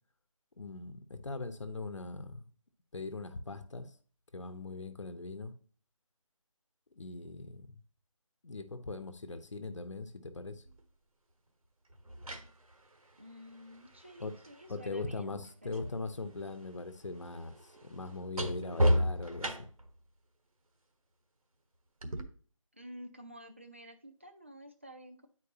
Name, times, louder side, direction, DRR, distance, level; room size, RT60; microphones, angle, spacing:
voice 1, 0.6-2.5 2.9-3.9 4.3-5.5 6.9-7.8 8.4-10.6 14.2-14.3 14.7-19.6, left 3 dB, 60° left, 1.0 m, -41 dB
sound 1, 10.6-10.8 11.9-15.9 16.2-20.0 22.0-22.2, equal, 90° right, 1.3 m, -34 dB
voice 2, 13.2-16.0 22.7-25.3, equal, 20° right, 0.5 m, -51 dB
9.7 x 4.6 x 2.8 m
figure-of-eight pair, 175°, 18 cm